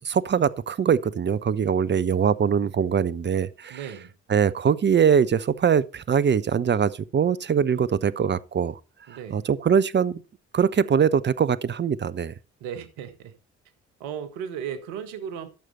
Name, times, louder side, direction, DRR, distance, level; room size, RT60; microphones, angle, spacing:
voice 1, 0.0-3.8 4.3-8.8 9.3-10.2 10.5-12.3, right 7 dB, 30° right, 0.8 m, -22 dB
voice 2, 3.7-4.1 9.1-9.5 12.6-13.3 14.0-15.5, right 8 dB, 75° right, 1.5 m, -35 dB
12.5 x 6.7 x 4.2 m
figure-of-eight pair, 45°, 34 cm